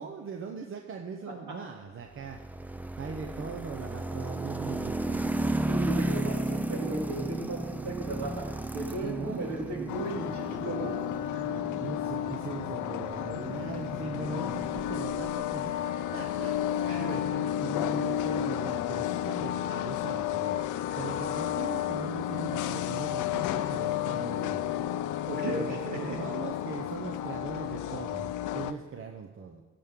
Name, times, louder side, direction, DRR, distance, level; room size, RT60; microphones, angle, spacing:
voice 1, 0.0-2.4 2.7-5.3 6.1-6.4 9.0-10.1 11.8-16.8 17.6-24.9 25.5-29.6, right 5 dB, 45° right, 3 dB, 0.7 m, -40 dB
sound 1, 2.2-15.3, right 2 dB, 5° right, 0.3 m, -34 dB
voice 2, 5.7-8.4 8.7-10.9 11.3-11.6 16.7-17.4 25.3-26.4, right 2 dB, 65° right, -1 dB, 2.6 m, -35 dB
sound 2, 9.9-28.7, left 11 dB, 80° left, 0.5 m, -32 dB
14.0 x 6.8 x 3.7 m, 1.3 s
cardioid pair, 90°, 30 cm